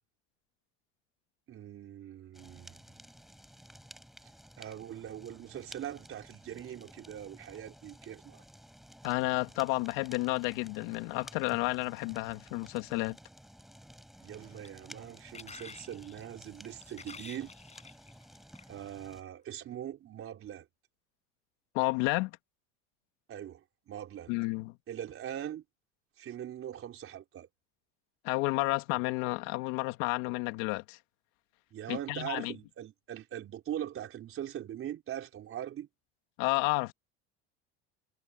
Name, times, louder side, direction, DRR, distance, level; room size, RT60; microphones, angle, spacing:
voice 1, 1.5-3.0 4.6-8.4 14.2-17.5 18.7-20.6 23.3-24.3 24.9-25.6 26.2-27.5 31.7-35.9, right 11 dB, 40° right, 4.5 m, -41 dB
Fire, 2.3-19.2, equal, ahead, 5.8 m, -54 dB
voice 2, 9.0-13.2 21.7-22.3 24.3-24.8 28.2-31.0 31.9-32.5 36.4-36.9, left 23 dB, 75° left, 2.6 m, -31 dB
sound 1, 14.2-18.8 19.6-19.8, left 5 dB, 20° left, 5.0 m, -51 dB
supercardioid pair, 120°, 33 cm